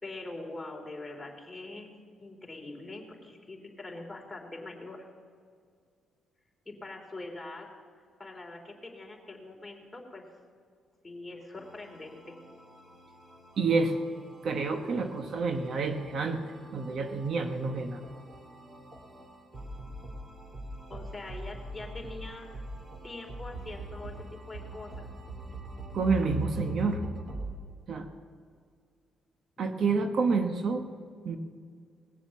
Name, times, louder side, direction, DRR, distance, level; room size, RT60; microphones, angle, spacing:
voice 1, 0.0-1.9 2.2-5.1 6.6-7.7 8.2-10.3 11.0-12.4 20.9-22.5 23.0-25.1, left 2 dB, 15° left, 0 dB, 3.2 m, -43 dB
sound 1, 11.5-27.5, right 1 dB, 35° right, 2.5 m, -43 dB
voice 2, 13.6-14.0 14.4-16.4 16.7-18.0 25.9-27.0 27.9-28.1 29.6-30.9 31.2-31.4, right 4 dB, 60° right, 6 dB, 1.1 m, -28 dB
19.5 x 7.4 x 7.0 m, 2.1 s
cardioid pair, 90°, 0 cm